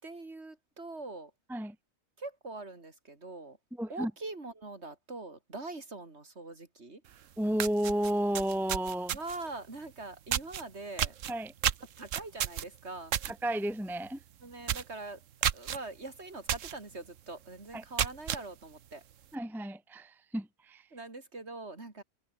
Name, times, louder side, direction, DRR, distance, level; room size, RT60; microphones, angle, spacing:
voice 1, 0.0-1.3 2.2-3.6 3.9-7.0 9.1-11.1 12.0-13.2 14.4-15.2 15.5-19.0 20.9-22.0, right 2 dB, 50° right, 3.7 m, -43 dB
voice 2, 3.8-4.1 7.4-9.2 11.3-11.5 13.4-14.2 17.7-17.8 19.3-20.9, right 1 dB, ahead, 1.0 m, -32 dB
sound 1, 7.1-7.2 7.5-9.5 10.3-10.6 11.0-13.3 13.7-13.9 14.2-14.3 14.6-14.9 15.4-15.8 16.5-16.7 17.2-17.3 17.8-18.4, right 10 dB, 70° right, 1.2 m, -31 dB
omnidirectional pair, 1.4 m